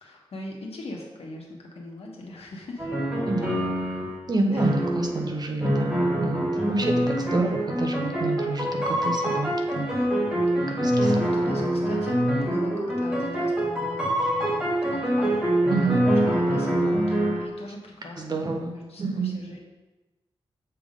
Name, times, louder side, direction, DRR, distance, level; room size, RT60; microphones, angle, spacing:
voice 1, 0.0-2.9 4.5-4.7 6.5-7.5 10.5-14.6 14.9-15.4 15.7-19.6, left 2 dB, 80° left, -1 dB, 1.2 m, -41 dB
sound 1, 2.8-4.1 4.6-5.3 5.6-17.5, right 1 dB, 10° right, 1.2 m, -25 dB
voice 2, 3.3-3.6 4.3-6.9 7.3-9.9 10.8-11.1 15.7-16.0 18.2-18.7 19.0-19.3, right 3 dB, 40° right, 2 dB, 0.8 m, -28 dB
6.8 x 3.6 x 5.1 m, 1.1 s
wide cardioid pair, 170°, 10 cm